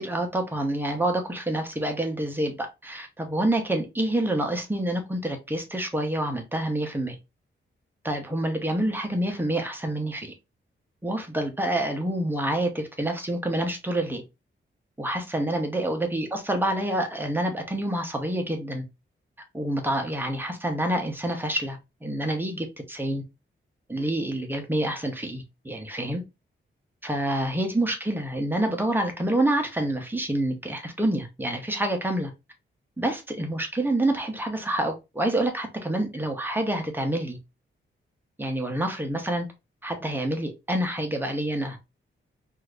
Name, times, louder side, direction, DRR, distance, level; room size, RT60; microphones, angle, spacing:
voice 1, 0.0-7.2 8.0-10.3 11.0-14.2 15.0-18.8 19.5-23.2 23.9-26.2 27.0-32.3 33.0-37.4 38.4-39.5 39.8-41.8, right 1 dB, 10° right, 0.6 m, -27 dB
2.7 x 2.4 x 3.2 m
wide cardioid pair, 155°, 21 cm